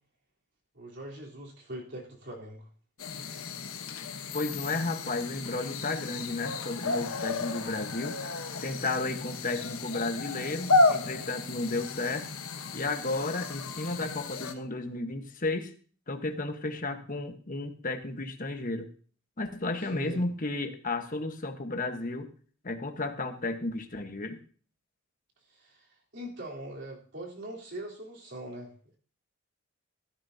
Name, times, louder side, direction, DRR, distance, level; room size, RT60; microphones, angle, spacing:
voice 1, 0.7-2.7 19.9-20.2 25.5-25.9 26.1-29.0, right 1 dB, 55° right, -3 dB, 3.8 m, -42 dB
sound 1, 3.0-14.5, left 3 dB, 75° left, 1.2 m, -32 dB
voice 2, 4.3-8.2 8.6-12.3 12.7-15.7 16.1-18.9 19.4-22.3 22.6-24.4, left 2 dB, 40° left, 6 dB, 1.3 m, -33 dB
15.0 x 13.0 x 2.8 m, 0.43 s
head